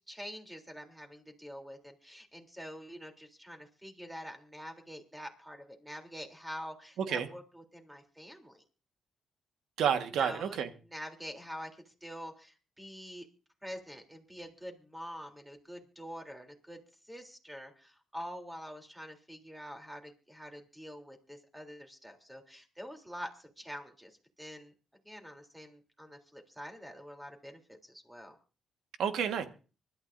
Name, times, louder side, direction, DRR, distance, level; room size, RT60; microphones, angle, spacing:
voice 1, 0.1-8.6 10.2-10.6 10.8-13.3 13.6-16.8 17.1-24.7 25.0-28.4, equal, 5° right, 4 dB, 3.4 m, -46 dB
voice 2, 9.8-10.7 29.0-29.5, right 8 dB, 75° right, 8 dB, 1.6 m, -30 dB
25.0 x 12.5 x 2.7 m, 0.35 s
cardioid pair, 90°, 0 cm